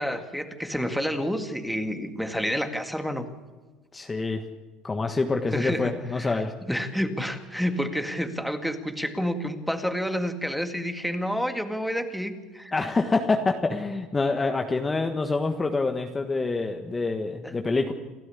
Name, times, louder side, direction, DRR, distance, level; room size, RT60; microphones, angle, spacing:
voice 1, 0.0-3.3 5.5-6.4 6.7-12.7 17.4-17.5, equal, ahead, 7 dB, 2.0 m, -29 dB
voice 2, 3.9-4.4 4.8-6.5 12.7-17.9, left 3 dB, 15° left, 5 dB, 1.5 m, -26 dB
29.0 x 12.5 x 8.4 m, 1.3 s
cardioid pair, 140°, 0 cm